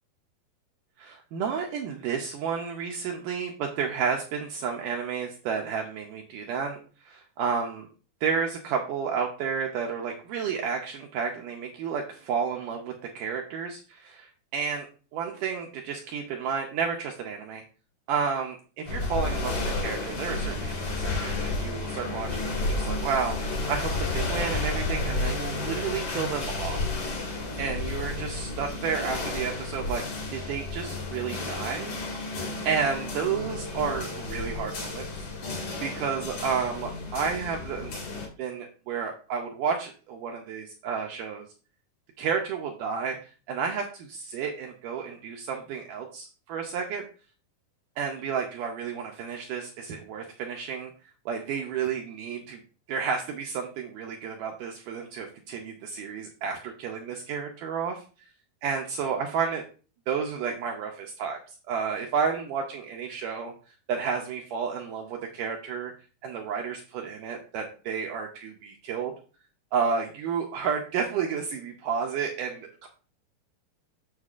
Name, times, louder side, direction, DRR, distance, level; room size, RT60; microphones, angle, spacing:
voice 1, 1.0-7.9 8.2-14.9 15.1-17.6 18.1-26.8 27.6-30.0 30.3-31.9 32.7-35.0 35.5-38.0 38.4-41.5 42.2-43.2 43.5-47.0 48.0-50.9 51.3-52.6 52.9-58.0 58.6-59.6 60.1-61.4 61.7-63.5 63.9-65.9 66.2-69.1 69.7-72.9, right 6 dB, 80° right, 2 dB, 1.9 m, -31 dB
sound 1, 18.9-38.3, left 3 dB, 45° left, 2.4 m, -32 dB
8.0 x 6.6 x 2.4 m, 0.38 s
omnidirectional pair, 4.4 m